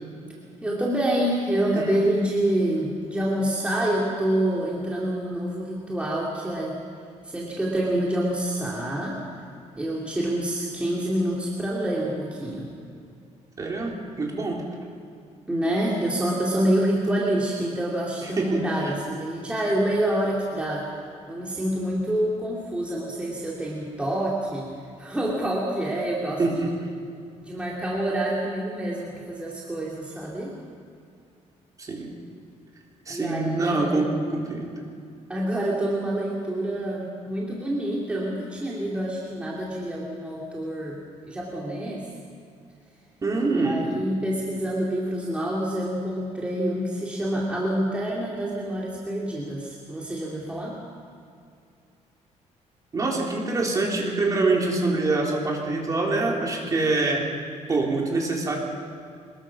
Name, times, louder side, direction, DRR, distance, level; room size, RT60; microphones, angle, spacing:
voice 1, 0.6-6.8 7.2-9.2 9.7-12.7 15.5-20.9 21.3-24.7 25.0-26.4 27.4-30.5 33.1-34.0 35.3-42.1 43.5-50.8, right 1 dB, 10° right, -4 dB, 2.7 m, -27 dB
voice 2, 13.6-14.7 18.4-18.6 26.4-26.7 31.8-32.1 33.1-34.7 43.2-43.9 52.9-57.3 57.7-58.6, right 3 dB, 30° right, -1 dB, 4.0 m, -25 dB
24.5 x 21.5 x 6.0 m, 2.4 s
cardioid pair, 155°, 12 cm